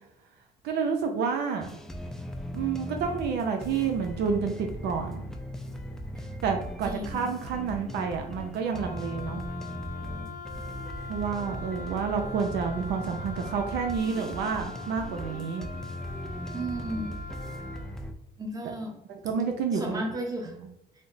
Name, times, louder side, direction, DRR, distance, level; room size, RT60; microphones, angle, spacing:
voice 1, 0.6-1.7 2.5-5.3 6.4-9.4 11.1-15.7 19.1-20.0, right 6 dB, 80° right, 4 dB, 0.6 m, -29 dB
sound 1, 1.6-18.1, equal, 5° left, 0.3 m, -38 dB
voice 2, 6.8-7.3 16.5-17.2 18.4-19.0 19.7-20.6, right 1 dB, 20° right, 1 dB, 0.9 m, -34 dB
Wind instrument woodwind instrument, 8.8-17.9, left 3 dB, 50° left, 0.5 m, -43 dB
3.2 x 2.0 x 3.9 m, 0.86 s
cardioid pair, 110°, 17 cm